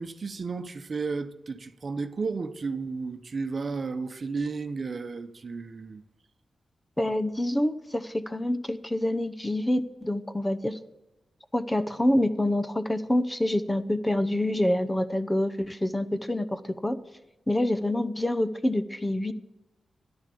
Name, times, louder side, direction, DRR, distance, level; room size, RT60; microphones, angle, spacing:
voice 1, 0.0-6.0, right 4 dB, 45° right, 1.0 m, -33 dB
voice 2, 7.0-10.8 11.5-17.0 17.5-19.3, left 1 dB, 15° left, 0.8 m, -26 dB
14.0 x 11.0 x 6.9 m
wide cardioid pair, 115°, 0 cm